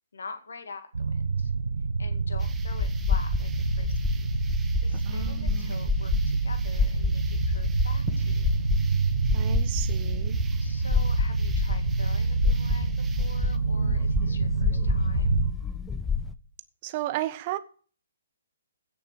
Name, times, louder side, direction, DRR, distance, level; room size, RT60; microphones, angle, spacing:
voice 1, 0.1-1.5 2.0-4.3 4.8-8.5 9.5-9.8 10.6-15.4, left 4 dB, 60° left, 2.1 m, -45 dB
sound 1, 0.9-15.5, right 4 dB, 65° right, 1.0 m, -27 dB
sound 2, 2.3-16.3, left 5 dB, 10° left, 0.6 m, -30 dB
sound 3, 2.4-13.6, right 6 dB, 10° right, 1.2 m, -49 dB
voice 2, 5.1-5.7 9.3-10.4 16.8-17.6, right 14 dB, 30° right, 1.1 m, -33 dB
16.0 x 6.9 x 4.8 m
figure-of-eight pair, 130°, 0 cm